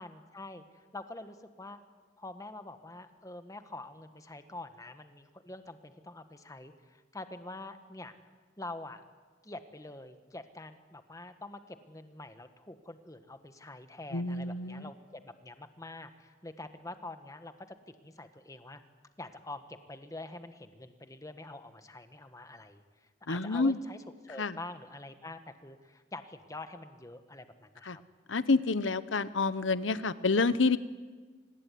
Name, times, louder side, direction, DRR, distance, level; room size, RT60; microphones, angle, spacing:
voice 1, 0.0-1.8 2.2-8.1 8.6-9.0 9.4-18.8 19.2-22.8 23.3-24.0 24.2-28.0, left 2 dB, 20° left, 9 dB, 1.6 m, -46 dB
voice 2, 14.1-14.9 23.3-23.8 24.4-24.6 27.8-28.0 28.3-30.8, left 3 dB, 85° left, 15 dB, 1.0 m, -28 dB
25.5 x 20.5 x 9.5 m, 1.4 s
head